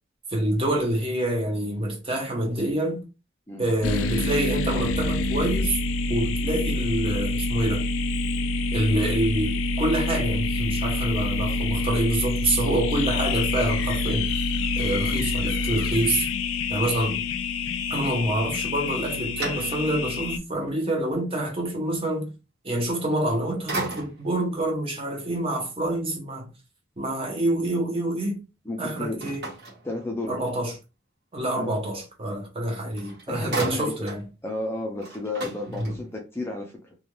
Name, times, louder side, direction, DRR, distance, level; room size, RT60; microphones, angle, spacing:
voice 1, 0.3-3.1 3.6-5.8 6.1-7.9 8.7-14.4 14.8-16.3 16.7-17.2 17.9-22.3 22.6-26.5 27.0-28.4 28.8-29.5 30.3-30.8 31.3-34.2 35.8-36.0, right 1 dB, 30° right, 0.7 m, -27 dB
sound 1, 3.8-20.4, left 2 dB, 80° left, 0.3 m, -27 dB
sound 2, 4.4-8.5, left 1 dB, 80° right, 0.5 m, -43 dB
sound 3, 18.7-20.2 20.7-20.8 23.0-23.3 23.7-24.4 29.2-30.5 32.6-32.7 33.0-34.3 34.6-34.7 35.0-36.3, right 2 dB, 55° right, 1.2 m, -35 dB
voice 2, 28.6-29.2 29.8-30.4 31.6-31.8 32.8-32.9 33.3-33.9 34.4-37.0, left 2 dB, 10° left, 0.4 m, -33 dB
2.4 x 2.2 x 3.0 m
head